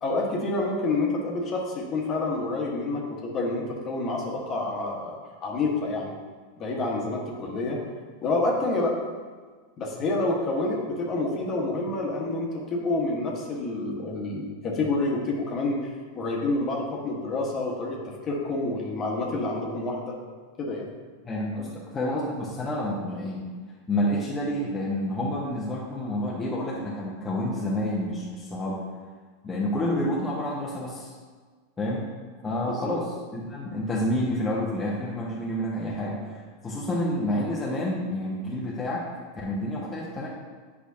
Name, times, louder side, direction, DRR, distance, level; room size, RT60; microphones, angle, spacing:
voice 1, 0.0-6.1 6.6-7.8 8.2-9.0 9.8-20.1 20.6-20.9 32.6-32.9, left 2 dB, 35° left, -2 dB, 1.4 m, -28 dB
voice 2, 21.2-23.5 23.9-28.8 29.4-31.1 31.8-32.1 32.4-33.1 33.3-39.1 39.4-40.3, left 1 dB, 20° left, -5 dB, 1.0 m, -29 dB
8.3 x 5.0 x 2.8 m, 1.5 s
hypercardioid pair, 90°, 0 cm